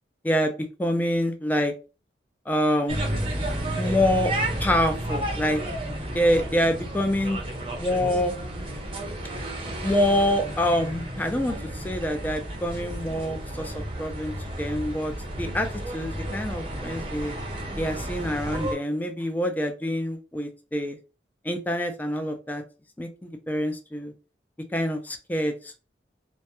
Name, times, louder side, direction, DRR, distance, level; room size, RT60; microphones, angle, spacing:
voice 1, 0.2-1.7 2.5-3.0 3.7-4.3 4.6-5.6 6.1-7.4 7.8-8.3 9.8-13.7 14.0-17.3 17.8-21.0 21.4-22.6 23.0-24.1 24.7-25.7, equal, 10° left, 5 dB, 0.3 m, -26 dB
sound 1, 2.9-18.7, right 1 dB, 30° right, 0.6 m, -32 dB
2.2 x 2.1 x 2.9 m, 0.31 s
head